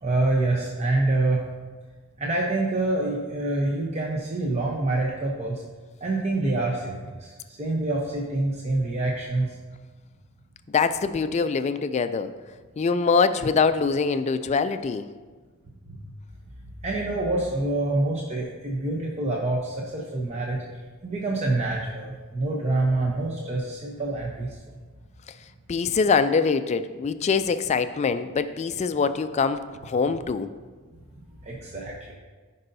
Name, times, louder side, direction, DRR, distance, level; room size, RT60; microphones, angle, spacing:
voice 1, 0.0-1.5 2.2-5.6 6.0-9.5 15.9-16.0 16.8-20.6 21.0-24.6 31.4-32.1, right 2 dB, 30° right, -2 dB, 0.8 m, -26 dB
voice 2, 10.7-12.3 12.8-15.0 25.7-30.5, left 5 dB, 30° left, 11 dB, 0.3 m, -24 dB
13.5 x 5.4 x 2.7 m, 1.4 s
head